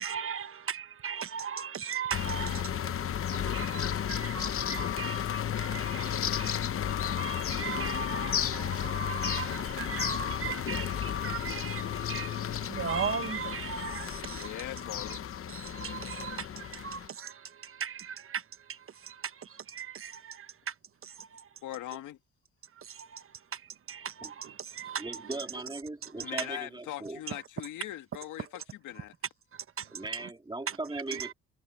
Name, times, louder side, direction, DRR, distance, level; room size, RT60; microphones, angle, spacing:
voice 1, 0.0-14.6 15.1-15.2 15.5-20.7 21.0-21.5 22.7-25.4 26.0-26.1 26.4-26.5 27.3-27.4 28.4-28.5 29.5-30.3 30.7-31.3, right 7 dB, 45° right, 1.0 m, -39 dB
sound 1, 2.1-17.1, left 9 dB, 45° left, 0.9 m, -33 dB
voice 2, 14.3-15.2 21.6-22.2 26.1-29.1, left 13 dB, 80° left, 2.1 m, -41 dB
voice 3, 25.0-27.2 29.9-31.3, right 2 dB, 15° right, 3.0 m, -38 dB
cardioid pair, 90°, 30 cm